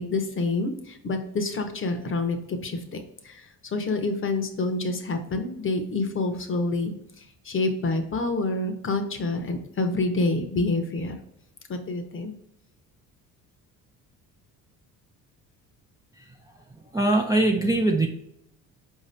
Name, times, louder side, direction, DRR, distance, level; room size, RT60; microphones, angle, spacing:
voice 1, 0.0-6.9 7.4-11.2 11.7-12.4, left 2 dB, 35° left, 6 dB, 0.8 m, -27 dB
voice 2, 16.2-18.1, right 2 dB, 10° right, 1 dB, 0.4 m, -23 dB
4.7 x 2.8 x 3.2 m, 0.77 s
supercardioid pair, 70°, 38 cm